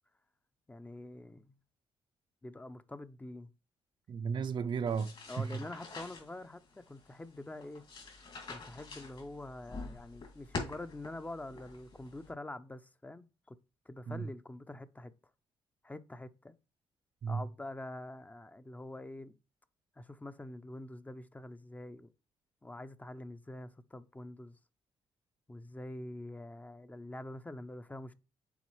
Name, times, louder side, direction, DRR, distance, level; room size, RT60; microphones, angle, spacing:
voice 1, 0.7-1.5 2.4-3.5 5.3-7.8 8.5-13.6 13.9-15.1 15.8-16.6 17.3-19.4 20.0-22.1 22.6-24.6 25.5-28.1, left 1 dB, 15° left, 0.5 m, -46 dB
voice 2, 4.1-5.6 14.1-14.3 17.2-17.5, right 6 dB, 50° right, 0.5 m, -34 dB
sound 1, 4.9-12.3, left 4 dB, 60° left, 2.6 m, -46 dB
7.1 x 4.3 x 3.1 m
supercardioid pair, 65°, 10 cm